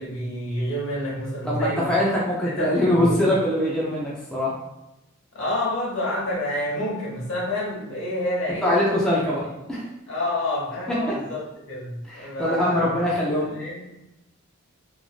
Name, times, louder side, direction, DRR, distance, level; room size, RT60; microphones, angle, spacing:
voice 1, 0.0-2.0 2.4-3.3 5.3-8.9 10.1-12.9 13.4-13.9, left 1 dB, 70° left, -5 dB, 1.2 m, -28 dB
voice 2, 1.4-4.6 8.6-9.9 10.9-11.1 12.0-13.5, left 1 dB, 5° left, -6 dB, 0.4 m, -23 dB
3.1 x 2.5 x 2.4 m, 0.91 s
head